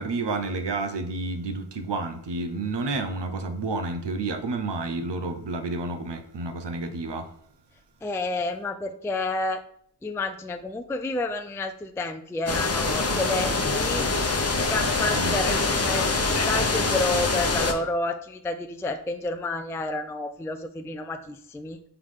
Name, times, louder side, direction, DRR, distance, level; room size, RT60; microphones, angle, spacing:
voice 1, 0.0-7.3 15.2-15.3, right 3 dB, 90° right, 0.8 m, -30 dB
voice 2, 8.0-9.6 10.0-14.1 14.7-21.8, left 2 dB, 5° left, 0.3 m, -30 dB
sound 1, 12.5-17.7, left 3 dB, 35° left, 0.7 m, -24 dB
5.8 x 3.7 x 4.8 m
wide cardioid pair, 80°, 40 cm